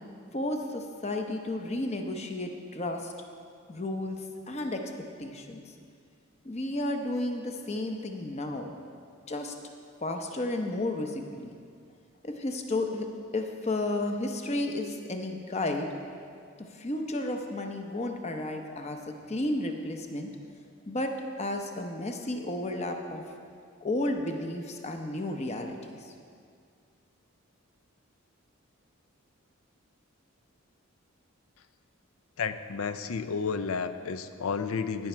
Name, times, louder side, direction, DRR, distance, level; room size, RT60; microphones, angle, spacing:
voice 1, 0.3-3.1 3.7-4.8 5.2-5.6 6.4-8.7 9.3-9.5 10.0-11.6 12.2-13.1 13.3-15.9 16.6-20.3 20.9-21.1 21.4-23.2 23.8-26.1, left 2 dB, 30° left, 4 dB, 0.8 m, -32 dB
voice 2, 32.4-35.1, left 5 dB, 75° left, 11 dB, 0.5 m, -31 dB
17.5 x 6.0 x 4.4 m, 2.3 s
head